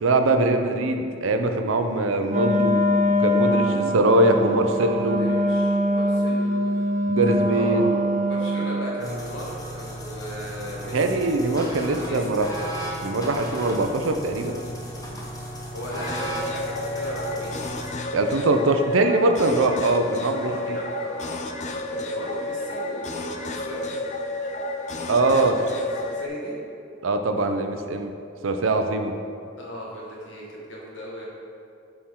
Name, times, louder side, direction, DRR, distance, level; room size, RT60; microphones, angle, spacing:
voice 1, 0.0-2.7 3.2-5.2 7.1-7.9 10.9-12.5 13.0-14.5 18.1-20.8 25.1-25.6 27.0-28.1 28.4-29.1, right 2 dB, 90° right, 6 dB, 0.5 m, -22 dB
Wind instrument woodwind instrument, 2.3-8.9, equal, 35° right, 0.6 m, -23 dB
voice 2, 3.6-7.9 8.2-11.3 11.9-12.5 15.7-17.7 20.3-24.0 26.0-26.5 29.6-31.3, equal, 70° left, -4 dB, 1.6 m, -37 dB
sound 1, 9.0-17.9, right 1 dB, 20° left, 0.8 m, -35 dB
sound 2, 16.0-26.3, left 2 dB, 35° left, 0.4 m, -31 dB
8.4 x 4.5 x 3.7 m, 2.5 s
head